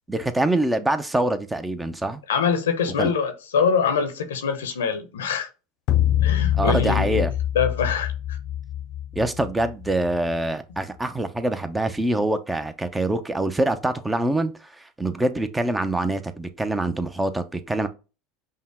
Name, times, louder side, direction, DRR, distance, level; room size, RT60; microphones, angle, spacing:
voice 1, 0.1-2.2 3.0-3.1 6.6-7.3 9.2-17.9, right 2 dB, 10° right, 0.6 m, -25 dB
voice 2, 2.3-5.5 6.2-8.1, left 6 dB, 90° left, 0.8 m, -24 dB
sound 1, 5.9-10.3, left 12 dB, 55° left, 0.6 m, -25 dB
5.5 x 2.1 x 3.5 m
hypercardioid pair, 95°, 0 cm